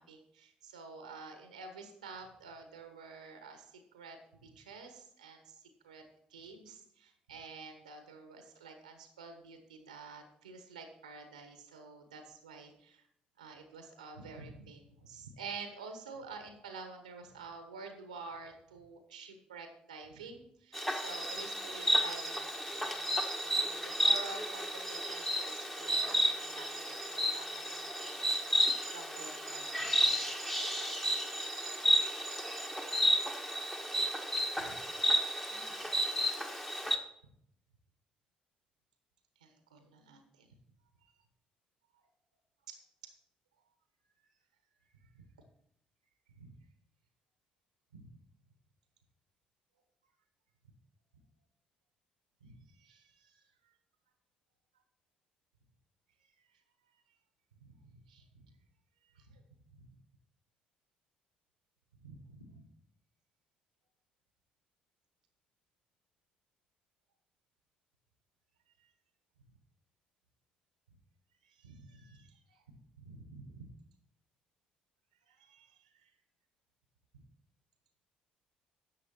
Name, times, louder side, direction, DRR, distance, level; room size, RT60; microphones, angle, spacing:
voice 1, 0.0-4.2 4.4-6.0 6.3-13.0 13.4-28.3 28.9-30.0 34.6-34.8 35.5-35.8 39.4-40.5 45.1-45.2 46.4-46.5 47.9-48.1 52.4-53.4 57.6-58.5 59.1-59.4 59.9-60.0 62.0-62.7 71.4-73.7 75.3-76.1, right 4 dB, 80° right, 6 dB, 1.2 m, -50 dB
Insect, 20.7-37.0, equal, 10° left, 1.5 m, -32 dB
11.0 x 7.2 x 4.4 m, 0.71 s
figure-of-eight pair, 45°, 4 cm